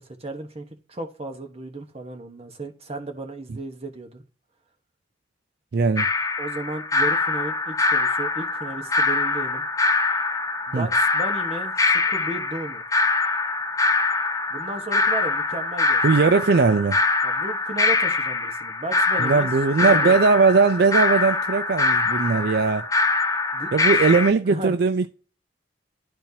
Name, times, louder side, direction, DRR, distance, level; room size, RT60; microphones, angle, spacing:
voice 1, 0.0-4.2 6.4-9.6 10.7-12.8 14.5-16.0 17.2-19.5 19.8-20.2 23.5-23.7 24.4-24.7, right 2 dB, 35° right, 1.2 m, -34 dB
voice 2, 5.7-6.1 10.7-10.9 16.0-17.0 19.2-22.9 23.7-25.1, right 4 dB, 60° right, 0.4 m, -19 dB
sound 1, 6.0-24.3, left 3 dB, 20° left, 0.6 m, -23 dB
12.0 x 4.4 x 2.8 m
head